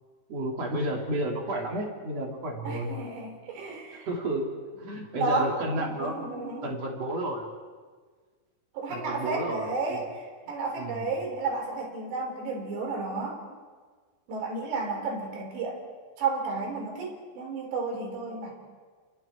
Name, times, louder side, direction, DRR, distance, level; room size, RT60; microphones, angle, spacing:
voice 1, 0.3-2.9 3.9-4.5 4.8-7.5 8.9-10.1 10.8-11.1, right 1 dB, 35° right, 0 dB, 3.5 m, -32 dB
voice 2, 2.7-4.1 5.1-5.5 5.8-6.7 8.8-13.4 14.3-15.8 16.2-18.5, right 3 dB, 60° right, 1 dB, 5.9 m, -32 dB
29.5 x 28.5 x 4.5 m, 1.5 s
omnidirectional pair, 5.8 m